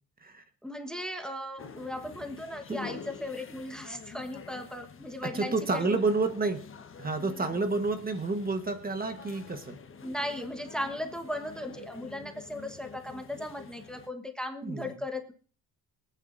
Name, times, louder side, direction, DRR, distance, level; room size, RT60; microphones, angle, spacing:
voice 1, 0.6-6.0 10.0-15.3, left 1 dB, ahead, 6 dB, 1.2 m, -37 dB
sound 1, 1.6-14.1, left 6 dB, 35° left, 1.2 m, -47 dB
voice 2, 5.2-6.7 7.0-9.8 14.6-14.9, right 3 dB, 25° right, 7 dB, 1.2 m, -29 dB
25.0 x 9.1 x 2.6 m, 0.42 s
cardioid pair, 115°, 35 cm